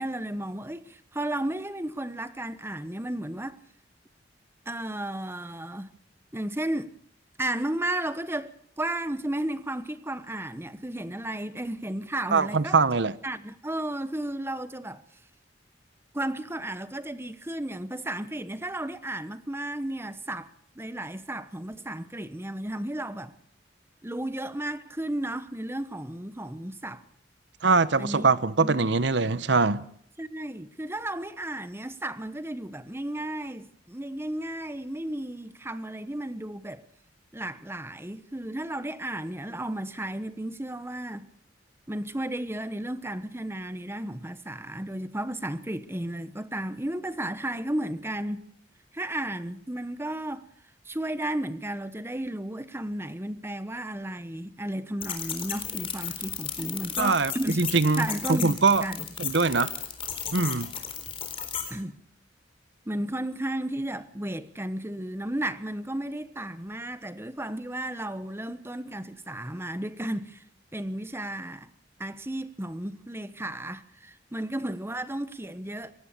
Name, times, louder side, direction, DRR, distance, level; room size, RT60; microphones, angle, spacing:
voice 1, 0.0-3.6 4.7-5.9 6.3-6.9 7.4-12.8 13.2-15.0 16.1-23.3 24.0-27.0 28.0-28.3 28.6-28.9 30.2-36.8 37.3-41.3 41.9-48.4 48.9-50.5 50.8-57.6 58.0-59.1 61.7-62.0 62.8-70.4 70.7-71.7 72.0-75.9, right 1 dB, 15° right, 1.1 m, -33 dB
voice 2, 12.3-13.1 27.6-29.9 57.0-58.8 59.2-59.7 60.3-60.7, right 4 dB, 65° right, 1.0 m, -23 dB
sound 1, 55.0-61.7, left 8 dB, 30° left, 4.0 m, -34 dB
23.5 x 18.5 x 6.8 m
head